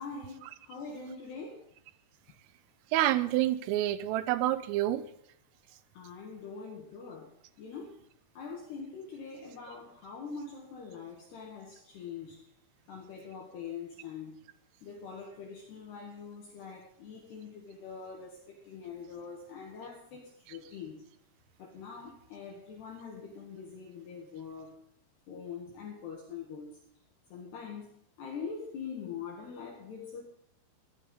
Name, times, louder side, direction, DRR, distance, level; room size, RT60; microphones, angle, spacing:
voice 1, 0.0-1.7 5.9-7.3 7.6-8.0 8.4-12.4 12.9-14.4 14.8-21.1 21.6-24.8 25.3-26.7 27.3-30.2, left 5 dB, 60° left, 0 dB, 3.6 m, -43 dB
voice 2, 2.9-5.0, right 14 dB, 80° right, 13 dB, 3.4 m, -28 dB
16.5 x 12.0 x 5.6 m, 0.69 s
omnidirectional pair, 6.0 m